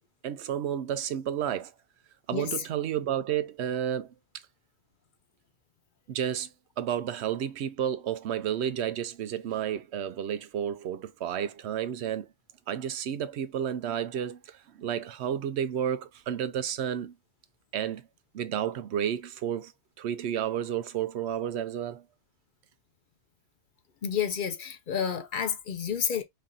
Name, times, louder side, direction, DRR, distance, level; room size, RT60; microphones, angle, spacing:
voice 1, 0.2-1.7 2.3-4.1 6.1-6.5 6.8-12.3 12.7-17.1 17.7-18.1 18.3-19.7 20.0-22.0, right 9 dB, 75° right, 0.9 m, -31 dB
voice 2, 24.0-26.2, left 7 dB, 55° left, 0.7 m, -30 dB
3.2 x 2.6 x 3.7 m
omnidirectional pair, 1.1 m